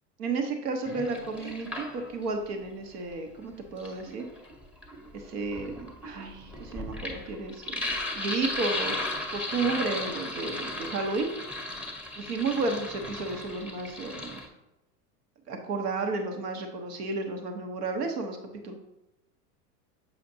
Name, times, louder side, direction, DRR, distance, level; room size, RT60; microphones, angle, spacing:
voice 1, 0.2-4.3 5.1-8.9 9.3-11.3 12.2-14.4 15.5-18.4 18.6-18.7, right 3 dB, 75° right, 5 dB, 1.1 m, -32 dB
Sink (filling or washing), 0.9-2.4 3.5-14.5, left 2 dB, 5° right, 0.8 m, -36 dB
7.4 x 5.1 x 2.7 m, 0.94 s
hypercardioid pair, 105°, 48 cm